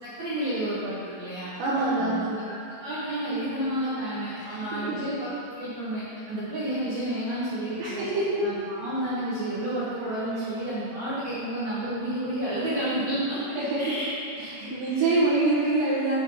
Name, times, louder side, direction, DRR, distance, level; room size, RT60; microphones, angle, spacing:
voice 1, 0.0-1.5 1.8-2.1 2.5-2.6 2.8-8.1 8.4-14.0 14.5-15.1, right 1 dB, 90° right, -11 dB, 1.5 m, -31 dB
voice 2, 1.6-2.3 4.4-4.5 4.7-5.0 7.8-8.3 13.7-13.8 14.4-16.2, right 2 dB, 70° right, -10 dB, 3.4 m, -25 dB
10.0 x 3.9 x 6.5 m, 2.6 s
omnidirectional pair, 5.7 m